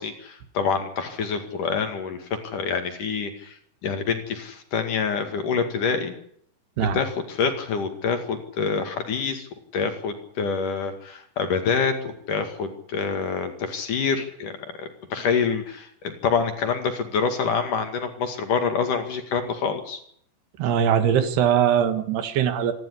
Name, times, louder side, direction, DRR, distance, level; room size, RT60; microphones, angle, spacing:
voice 1, 0.0-6.1 6.8-20.0, left 5 dB, 55° left, 6 dB, 3.4 m, -26 dB
voice 2, 20.6-22.7, right 9 dB, 70° right, 10 dB, 3.6 m, -21 dB
26.0 x 12.5 x 9.9 m, 0.66 s
omnidirectional pair, 5.0 m